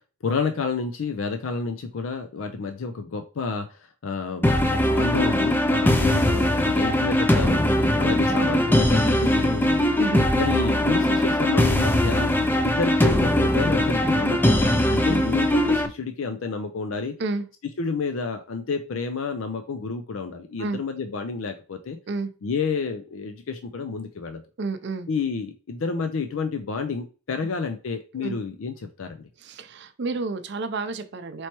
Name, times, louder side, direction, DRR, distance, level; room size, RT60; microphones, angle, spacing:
voice 1, 0.2-3.7 4.0-7.6 8.0-9.9 10.4-12.3 12.6-17.1 17.8-22.0 22.4-24.4 25.1-29.2, left 4 dB, 90° left, 7 dB, 0.5 m, -29 dB
sound 1, 4.4-15.9, left 1 dB, 10° left, 0.4 m, -21 dB
voice 2, 24.6-25.1 28.2-28.4 29.4-31.5, right 3 dB, 60° right, 9 dB, 0.5 m, -30 dB
4.4 x 3.1 x 3.0 m, 0.35 s
head